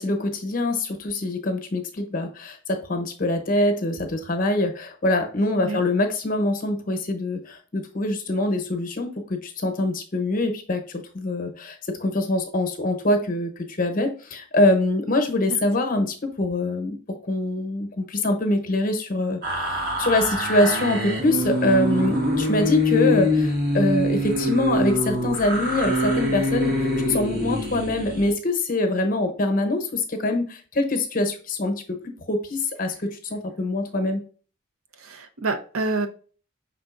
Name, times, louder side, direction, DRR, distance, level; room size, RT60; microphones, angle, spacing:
voice 1, 0.0-26.7 27.1-34.2, left 2 dB, 40° left, 5 dB, 0.8 m, -24 dB
sound 1, 19.4-28.3, left 1 dB, 45° right, 1.1 m, -24 dB
voice 2, 35.0-36.1, right 3 dB, 80° right, 7 dB, 0.7 m, -27 dB
5.6 x 3.7 x 2.5 m, 0.39 s
head